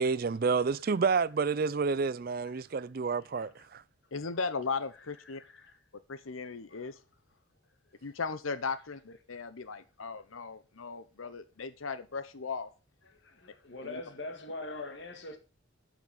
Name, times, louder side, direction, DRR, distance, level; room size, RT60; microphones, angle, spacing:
voice 1, 0.0-3.8, right 5 dB, 45° right, 0.4 m, -29 dB
voice 2, 2.4-2.8 3.4-3.7 5.3-5.8 6.7-6.9 13.0-15.4, left 2 dB, 55° left, 2.1 m, -44 dB
voice 3, 4.1-5.4 6.1-7.0 8.0-12.7 13.8-14.0, left 4 dB, 80° left, 0.8 m, -37 dB
9.2 x 6.1 x 7.0 m
head